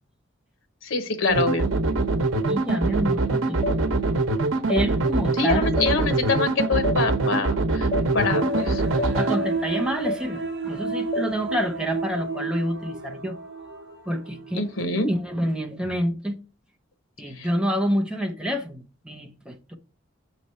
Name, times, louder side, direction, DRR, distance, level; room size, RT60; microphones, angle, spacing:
voice 1, 0.8-1.7 5.4-7.9 8.1-8.8 14.5-15.1 17.4-17.5, left 3 dB, 85° left, 1.0 m, -25 dB
sound 1, 1.3-9.4, right 3 dB, 85° right, 0.8 m, -24 dB
voice 2, 2.5-3.6 4.7-5.7 9.2-13.4 14.1-14.7 15.1-16.4 17.2-19.7, equal, 5° right, 0.8 m, -28 dB
sound 2, 3.6-3.8 4.7-4.9 5.8-5.9 6.8-7.0 7.9-8.1 9.0-9.1 10.1-10.2 11.1-11.3, left 1 dB, 30° left, 0.4 m, -27 dB
sound 3, 8.3-14.5 14.9-15.0, right 2 dB, 60° right, 0.9 m, -31 dB
6.6 x 3.2 x 5.4 m
head